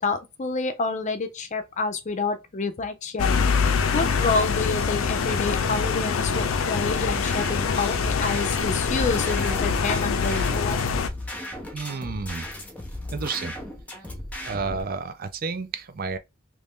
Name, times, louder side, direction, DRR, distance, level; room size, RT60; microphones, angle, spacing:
voice 1, 0.0-10.8, left 4 dB, 35° left, 0.6 m, -28 dB
sound 1, 3.2-11.1, left 5 dB, 85° left, 0.5 m, -24 dB
sound 2, 6.7-14.8, left 1 dB, 10° left, 0.8 m, -36 dB
voice 2, 11.7-12.5 13.1-13.5 14.5-16.2, right 4 dB, 45° right, 0.5 m, -31 dB
3.0 x 2.6 x 3.5 m
head